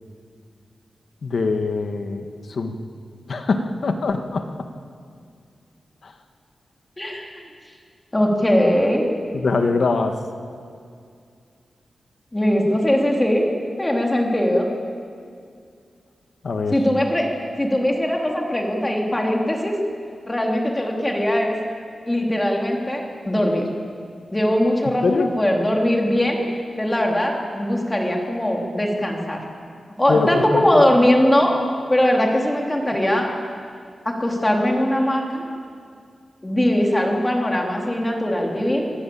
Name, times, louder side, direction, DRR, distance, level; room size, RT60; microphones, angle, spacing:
voice 1, 1.2-2.8 3.3-4.5 6.0-6.1 9.3-10.2 16.4-16.8 25.0-25.3 30.1-30.8, left 4 dB, 55° left, 6 dB, 1.8 m, -23 dB
voice 2, 7.0-7.4 8.1-9.1 12.3-13.4 13.8-14.7 16.7-17.3 17.6-19.7 20.3-21.5 22.1-23.7 24.3-26.4 26.8-29.4 30.0-31.5 31.9-33.3 34.0-35.4 36.4-38.8, left 1 dB, 15° left, 0 dB, 3.4 m, -20 dB
25.5 x 17.5 x 8.8 m, 2.3 s
wide cardioid pair, 160°, 0 cm